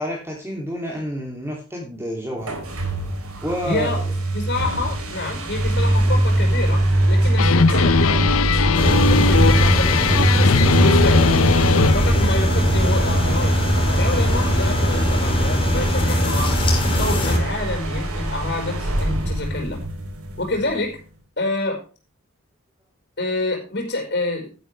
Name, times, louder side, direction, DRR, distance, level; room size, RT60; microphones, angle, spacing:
voice 1, 0.0-2.6 3.4-4.0, equal, 10° right, 0 dB, 2.9 m, -29 dB
sound 1, 2.4-20.9, right 1 dB, 85° right, 3.8 m, -22 dB
voice 2, 3.6-4.0 4.3-8.3 8.7-11.3 11.6-13.6 13.9-16.6 17.0-19.8 20.4-21.0 21.4-21.8 23.2-24.5, left 2 dB, 50° left, 1 dB, 4.8 m, -27 dB
sound 2, 7.4-12.4, left 5 dB, 70° left, 0.7 m, -19 dB
sound 3, 8.7-17.4, left 1 dB, 25° left, 4.0 m, -21 dB
12.0 x 11.5 x 3.4 m, 0.34 s
head